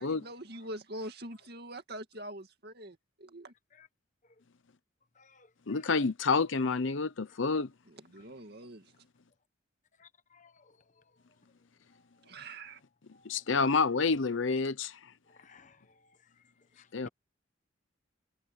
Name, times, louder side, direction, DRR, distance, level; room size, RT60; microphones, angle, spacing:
voice 1, 0.0-3.5 7.9-8.9 12.2-12.8, right 1 dB, 55° right, 2.3 m, -44 dB
voice 2, 5.1-5.9 8.2-8.3 10.0-11.2 11.9-12.7 13.1-13.4 15.3-16.4 16.7-17.1, left 3 dB, 40° left, 1.0 m, -58 dB
voice 3, 5.7-7.7 13.2-15.1 16.9-17.1, left 4 dB, 75° left, 0.8 m, -29 dB
head